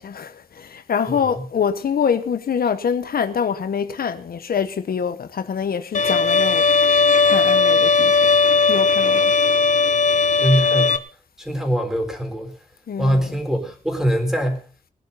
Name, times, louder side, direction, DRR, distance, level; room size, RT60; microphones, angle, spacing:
voice 1, 0.0-6.7 7.2-8.2 8.7-9.3 12.9-13.4, left 7 dB, 90° left, 1.0 m, -25 dB
Bowed string instrument, 5.9-11.0, left 4 dB, 55° left, 1.0 m, -17 dB
voice 2, 10.4-11.0 11.4-12.5 13.0-14.7, equal, 5° right, 3.8 m, -22 dB
21.0 x 11.0 x 4.1 m
wide cardioid pair, 120°, 15 cm